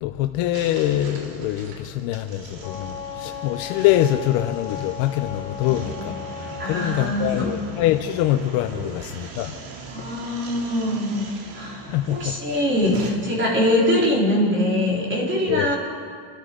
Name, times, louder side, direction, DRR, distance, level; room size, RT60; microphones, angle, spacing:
voice 1, 0.0-6.1 6.4-9.5 11.9-12.3 15.5-15.7, left 13 dB, 80° left, 7 dB, 0.9 m, -24 dB
sound 1, 0.5-13.1, right 3 dB, 85° right, 3.0 m, -40 dB
Wind instrument woodwind instrument, 2.6-7.2, left 9 dB, 55° left, 1.6 m, -36 dB
voice 2, 5.6-6.2 6.6-7.5 8.7-8.8 9.9-15.8, left 1 dB, 25° right, -4 dB, 3.9 m, -23 dB
27.0 x 13.5 x 3.8 m, 2.1 s
cardioid pair, 150°, 47 cm